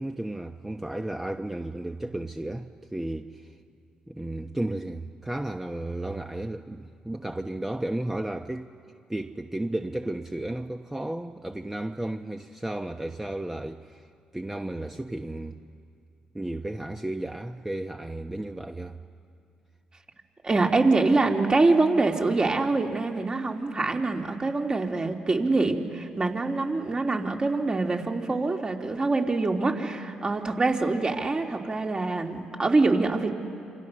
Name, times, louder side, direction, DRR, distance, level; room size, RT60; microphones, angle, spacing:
voice 1, 0.0-3.5 4.1-8.7 9.1-14.1 14.3-15.6 16.3-19.0, right 1 dB, 10° right, 1.2 m, -33 dB
voice 2, 20.4-33.3, right 3 dB, 30° right, 3.4 m, -25 dB
27.5 x 26.5 x 6.5 m
hypercardioid pair, 50°, 3 cm